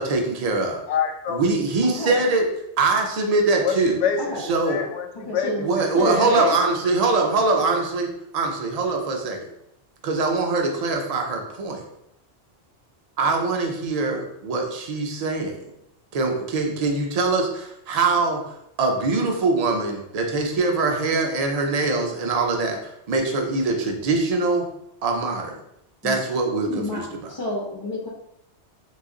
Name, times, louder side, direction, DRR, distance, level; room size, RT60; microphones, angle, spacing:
voice 1, 0.0-0.8 1.3-2.5 2.8-4.0 4.5-4.8 5.6-8.1 8.3-9.4 10.0-11.8 13.2-15.5 16.1-18.4 18.8-24.6 25.0-25.5 26.0-27.3, right 3 dB, 50° right, 2 dB, 0.5 m, -23 dB
voice 2, 0.9-1.4 3.6-7.0, left 7 dB, 90° left, 4 dB, 0.9 m, -28 dB
voice 3, 1.8-2.2 4.3-4.4 5.3-5.7 5.9-6.5 26.0-26.2 26.7-27.0 27.3-28.1, left 1 dB, 45° left, -3 dB, 0.3 m, -28 dB
2.9 x 2.3 x 3.7 m, 0.79 s
omnidirectional pair, 1.2 m